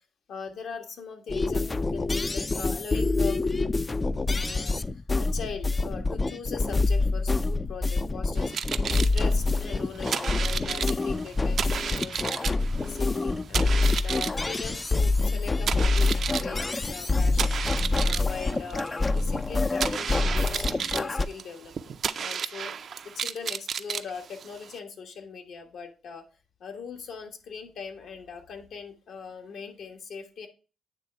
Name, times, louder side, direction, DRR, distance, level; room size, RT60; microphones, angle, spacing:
voice 1, 0.3-3.4 4.3-8.7 8.9-12.4 12.8-17.6 18.0-22.9 23.1-26.2 26.6-30.5, left 5 dB, 65° left, 4 dB, 1.2 m, -40 dB
sound 1, 1.3-21.3, left 3 dB, 25° left, 0.3 m, -26 dB
sound 2, 8.3-24.8, right 7 dB, 55° right, 0.4 m, -33 dB
9.0 x 3.2 x 4.3 m, 0.35 s
cardioid pair, 90°, 0 cm